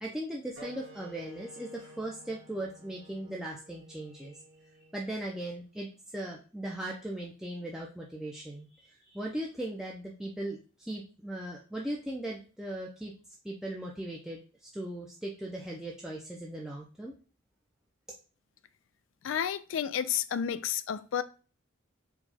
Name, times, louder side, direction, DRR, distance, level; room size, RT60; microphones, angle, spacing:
voice 1, 0.0-4.4 4.9-13.1 13.4-17.1, right 1 dB, 5° right, 0.5 m, -38 dB
sound 1, 0.5-5.7, right 2 dB, 60° right, 1.7 m, -53 dB
voice 2, 19.2-21.2, left 8 dB, 75° left, 0.3 m, -31 dB
4.7 x 2.3 x 4.1 m
head